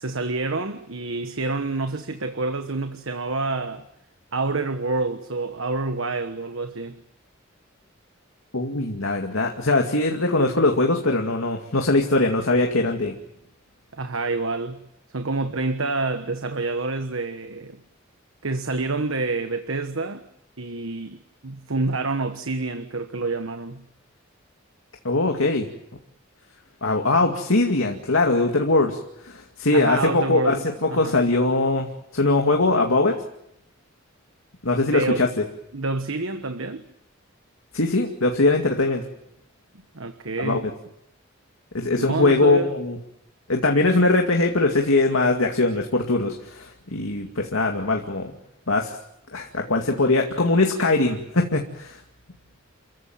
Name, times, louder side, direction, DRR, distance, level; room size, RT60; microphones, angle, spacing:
voice 1, 0.0-3.9 4.3-7.0 13.9-14.9 15.1-17.8 18.4-20.2 20.6-23.9 29.7-30.6 30.9-31.2 34.9-35.3 35.7-36.9 39.9-40.7 42.0-42.7, right 3 dB, 80° right, 1.3 m, -28 dB
voice 2, 8.5-13.1 25.0-25.7 26.8-29.0 29.2-31.9 32.1-33.2 34.6-35.3 37.7-39.0 40.4-40.6 41.7-43.0 43.5-48.3 48.7-49.0 49.3-52.0, left 2 dB, 90° left, 2.3 m, -21 dB
28.5 x 15.5 x 9.2 m
head